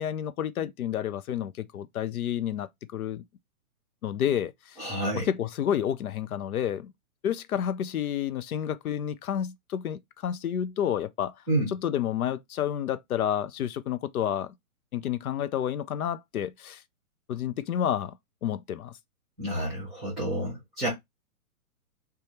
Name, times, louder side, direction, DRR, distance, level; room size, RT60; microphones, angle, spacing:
voice 1, 0.0-3.2 4.0-4.8 5.2-6.9 7.2-11.3 11.7-14.5 14.9-16.8 17.3-18.2 18.4-18.9, left 10 dB, 75° left, 0.5 m, -30 dB
voice 2, 4.8-5.3 11.5-11.7 19.4-20.9, right 1 dB, ahead, 0.7 m, -29 dB
3.4 x 2.2 x 4.1 m
hypercardioid pair, 175°, 44 cm